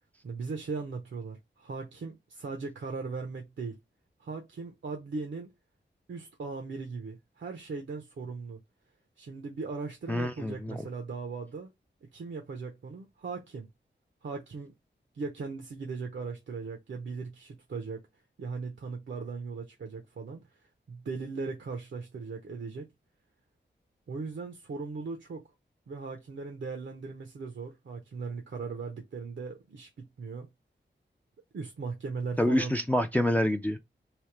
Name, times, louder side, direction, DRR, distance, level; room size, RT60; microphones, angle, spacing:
voice 1, 0.2-3.8 4.2-5.5 6.1-8.6 9.2-11.7 12.1-13.7 14.2-14.7 15.1-18.1 18.4-20.5 20.9-22.9 24.1-25.4 25.9-30.5 31.5-32.7, right 4 dB, 80° right, 0.8 m, -38 dB
voice 2, 10.1-10.8 32.4-33.8, left 1 dB, 10° left, 0.4 m, -27 dB
3.4 x 2.7 x 4.5 m
wide cardioid pair, 105°, 19 cm